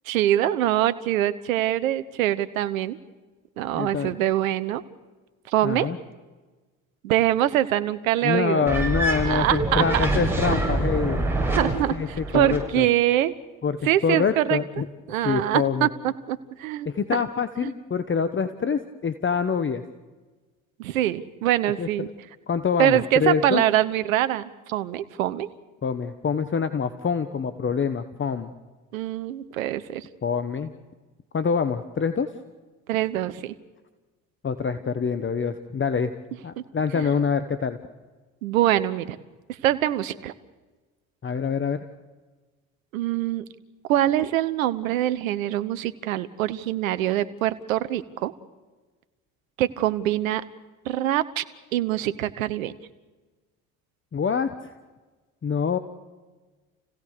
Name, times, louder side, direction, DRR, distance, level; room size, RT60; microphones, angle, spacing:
voice 1, 0.1-3.0 3.6-4.8 5.5-5.9 7.0-8.7 9.3-10.1 10.5-10.7 11.6-13.3 13.8-14.6 15.1-16.9 17.6-17.7 20.8-22.1 22.8-24.4 24.7-25.5 28.9-30.1 32.9-33.5 36.9-37.1 38.4-39.2 39.6-40.3 42.9-43.4 43.9-48.3 49.6-50.4 50.9-51.4 51.7-52.7, right 13 dB, 85° right, 14 dB, 1.0 m, -24 dB
voice 2, 3.7-4.1 5.6-6.0 8.2-11.2 11.9-12.9 13.6-14.9 15.2-15.9 16.8-19.8 21.8-21.9 22.5-23.6 25.8-28.5 30.2-30.7 31.3-32.3 34.4-36.1 36.4-37.8 41.2-41.8 54.1-54.5 55.4-55.8, left 6 dB, 30° left, 10 dB, 1.3 m, -25 dB
sound 1, 8.7-12.7, right 2 dB, 5° right, 7.2 m, -25 dB
29.0 x 17.0 x 6.7 m, 1.3 s
hypercardioid pair, 65°, 39 cm